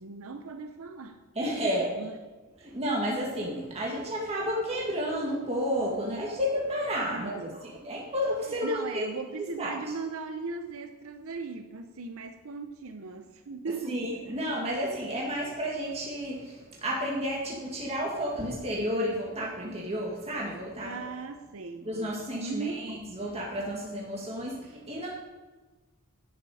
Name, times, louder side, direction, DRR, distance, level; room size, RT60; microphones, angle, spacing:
voice 1, 0.0-1.7 2.0-2.1 2.6-2.7 7.1-7.7 8.6-14.5 20.8-21.9 22.4-22.8, right 4 dB, 70° right, 7 dB, 0.7 m, -38 dB
voice 2, 1.4-1.9 2.6-9.1 9.4-9.9 13.9-21.0 21.8-25.1, equal, 30° right, -3 dB, 1.9 m, -31 dB
11.0 x 9.7 x 4.9 m, 1.3 s
head